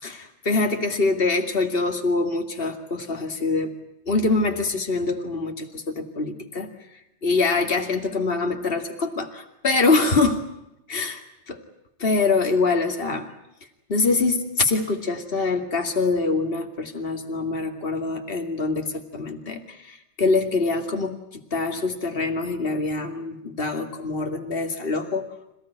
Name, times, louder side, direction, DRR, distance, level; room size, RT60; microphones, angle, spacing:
voice 1, 0.0-3.7 4.1-6.7 7.2-10.5 10.9-11.2 12.0-13.3 13.9-25.3, left 3 dB, 50° left, 4 dB, 2.6 m, -24 dB
27.0 x 17.0 x 9.9 m, 0.87 s
omnidirectional pair, 1.2 m